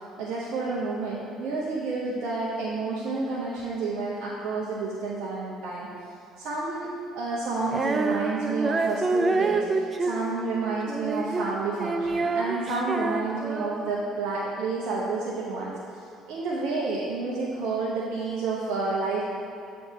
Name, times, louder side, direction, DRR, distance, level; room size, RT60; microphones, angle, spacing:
voice 1, 0.2-5.9 6.4-6.9 7.2-15.7 16.3-19.2, right 3 dB, 60° right, -6 dB, 0.7 m, -30 dB
Female singing, 7.7-14.1, right 3 dB, 30° right, 0.3 m, -28 dB
8.0 x 3.4 x 4.2 m, 2.5 s
figure-of-eight pair, 55°, 0 cm